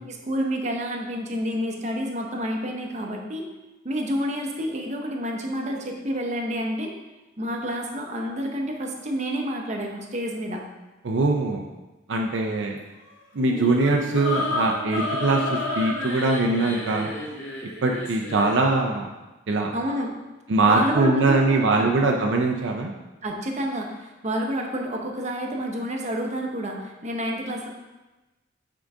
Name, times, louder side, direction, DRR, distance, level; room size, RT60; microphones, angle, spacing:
voice 1, 0.1-3.5 3.8-6.9 7.4-10.6 19.7-20.1 20.7-21.9 23.2-27.7, equal, 35° right, 1 dB, 0.8 m, -29 dB
voice 2, 11.0-11.6 12.1-12.8 13.3-17.1 17.8-19.1 19.5-19.7 20.5-22.9, right 3 dB, 60° right, 1 dB, 0.5 m, -22 dB
sound 1, 13.4-18.6, left 2 dB, 65° left, 1.4 m, -31 dB
8.8 x 3.8 x 3.6 m, 1.1 s
head